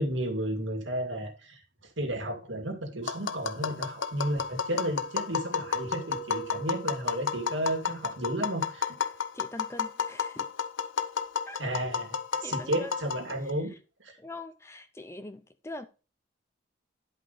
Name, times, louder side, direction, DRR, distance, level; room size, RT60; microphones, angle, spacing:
voice 1, 0.0-9.0 11.6-13.7 14.0-14.2, right 1 dB, 80° right, 2.3 m, -33 dB
Tap, 3.1-13.5, left 6 dB, 80° left, 0.7 m, -32 dB
voice 2, 9.3-10.5 11.5-11.6 12.4-12.9 14.2-15.9, left 2 dB, 15° left, 0.5 m, -42 dB
11.0 x 5.3 x 4.0 m
head